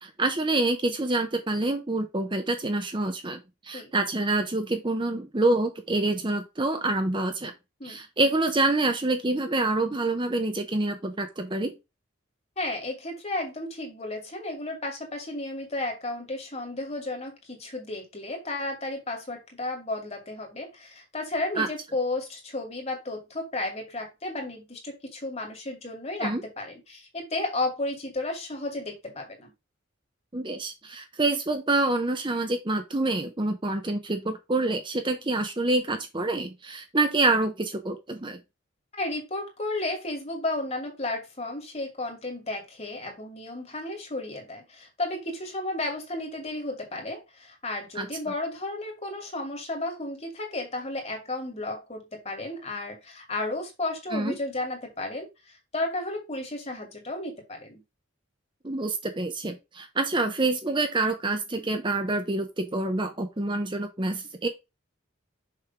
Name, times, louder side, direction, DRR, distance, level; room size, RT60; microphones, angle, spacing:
voice 1, 0.0-7.5 7.8-11.7 21.6-21.7 26.2-26.4 30.3-38.4 48.0-48.1 54.1-54.3 58.6-64.5, right 2 dB, 25° right, 0.8 m, -27 dB
voice 2, 12.6-29.5 38.9-57.8, left 2 dB, 35° left, 2.6 m, -33 dB
6.7 x 3.4 x 6.0 m
head